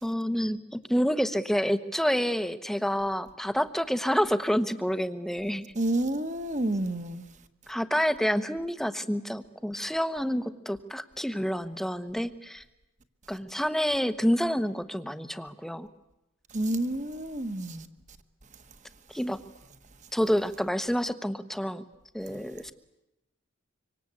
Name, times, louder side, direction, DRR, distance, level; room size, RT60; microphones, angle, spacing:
voice 1, 0.0-5.7 7.7-12.6 13.3-15.9 19.1-19.4 20.1-21.8 22.1-22.7, equal, ahead, 0.9 m, -28 dB
voice 2, 5.7-7.2 16.5-17.9, right 1 dB, 35° right, 1.4 m, -29 dB
25.5 x 25.0 x 8.4 m
head